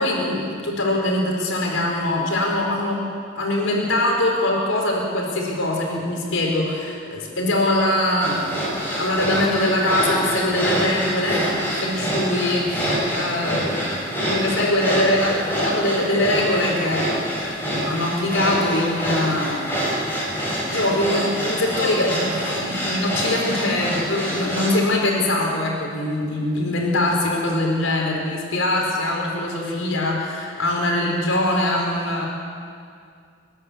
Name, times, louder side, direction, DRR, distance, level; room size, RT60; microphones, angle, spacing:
voice 1, 0.0-3.1 3.3-17.1 17.7-19.6 20.7-32.3, left 1 dB, 75° left, -1 dB, 4.8 m, -23 dB
sound 1, 8.2-24.8, equal, 10° left, 5.7 m, -26 dB
30.0 x 11.0 x 8.2 m, 2.3 s
head